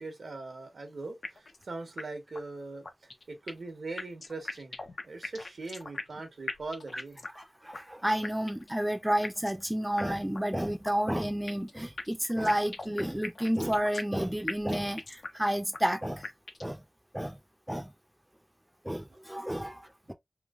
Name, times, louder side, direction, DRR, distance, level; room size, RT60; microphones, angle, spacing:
voice 1, 0.0-4.8 5.0-7.2 19.1-19.2 20.1-20.2, right 3 dB, 70° right, 1.1 m, -41 dB
sound 1, 1.2-1.6 2.0-2.1 2.3-2.4 2.8-3.7 4.0-6.2 6.5-7.4 7.7-7.8 8.2-8.7 9.2-9.6 10.0-10.1 10.3-10.4 10.8-11.7 12.0-14.2 14.5-15.4 15.7-15.8 16.2-16.7, left 3 dB, 60° left, 0.7 m, -39 dB
voice 2, 7.4-16.3 16.6-16.8 17.1-17.4 17.7-17.9 18.8-20.1, equal, 5° right, 0.6 m, -31 dB
3.2 x 2.7 x 2.4 m
wide cardioid pair, 100°, 0 cm